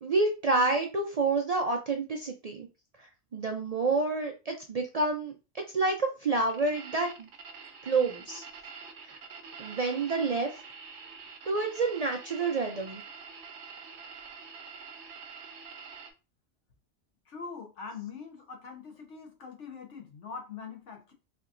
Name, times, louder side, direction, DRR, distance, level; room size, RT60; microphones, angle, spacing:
voice 1, 0.0-2.7 3.0-5.3 5.7-7.3 7.8-8.4 9.0-9.2 9.6-10.5 11.4-13.0, right 3 dB, 55° right, 0.4 m, -28 dB
sound 1, 6.5-16.1, right 5 dB, 70° right, 1.0 m, -46 dB
voice 2, 17.3-21.1, left 5 dB, 75° left, 1.3 m, -43 dB
4.3 x 2.8 x 2.5 m
omnidirectional pair, 1.2 m